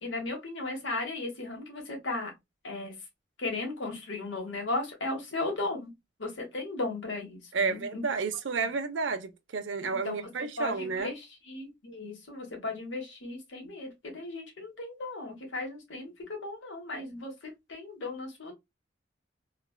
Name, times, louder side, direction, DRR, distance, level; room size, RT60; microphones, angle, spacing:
voice 1, 0.0-2.3 2.6-2.9 3.4-5.9 6.2-8.0 9.9-10.2 10.6-18.5, left 2 dB, 90° left, 1.2 m, -36 dB
voice 2, 7.5-11.1, right 4 dB, 85° right, 0.5 m, -31 dB
3.2 x 2.3 x 2.3 m
head